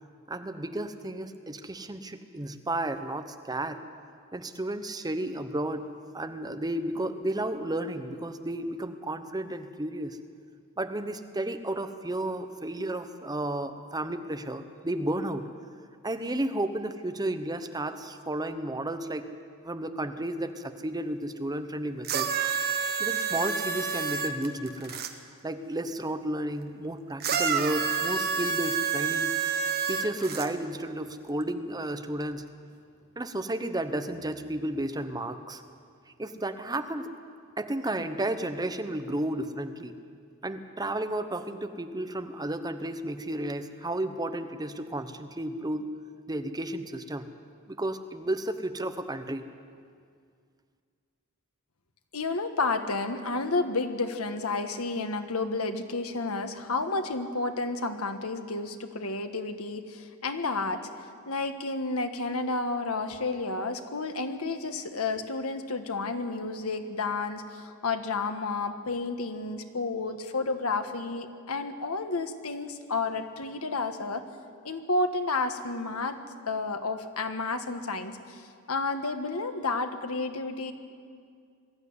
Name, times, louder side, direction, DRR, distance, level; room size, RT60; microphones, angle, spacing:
voice 1, 0.3-3.8 4.3-5.9 6.1-10.2 10.8-15.5 16.0-19.3 19.6-22.3 23.0-25.0 25.4-29.4 29.9-32.4 33.2-35.6 36.2-37.1 37.6-39.9 40.4-45.9 46.3-47.3 47.7-49.4, right 1 dB, 20° right, 8 dB, 0.9 m, -32 dB
sound 1, 22.0-25.1 27.2-30.5 31.4-31.5, right 6 dB, 45° right, 1.4 m, -28 dB
voice 2, 52.1-74.2 74.6-76.2 76.5-80.7, left 3 dB, 85° left, 7 dB, 1.5 m, -31 dB
21.0 x 13.5 x 9.6 m, 2.2 s
head